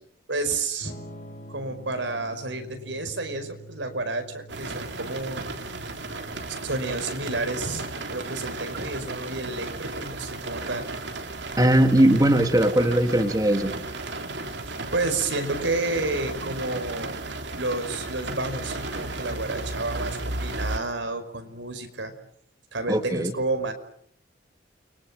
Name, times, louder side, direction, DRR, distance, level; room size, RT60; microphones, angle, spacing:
voice 1, 0.3-1.0 1.5-5.5 6.6-11.0 14.7-17.2 17.6-22.1 22.7-23.7, right 2 dB, 85° right, 7 dB, 5.4 m, -30 dB
Electric guitar / Strum, 0.8-10.6, right 1 dB, 45° left, 6.0 m, -47 dB
sound 1, 4.5-20.8, right 2 dB, 70° right, 3.4 m, -34 dB
voice 2, 11.6-13.7 22.9-23.3, right 1 dB, 20° right, 5 dB, 2.9 m, -19 dB
29.5 x 24.0 x 7.6 m, 0.69 s
head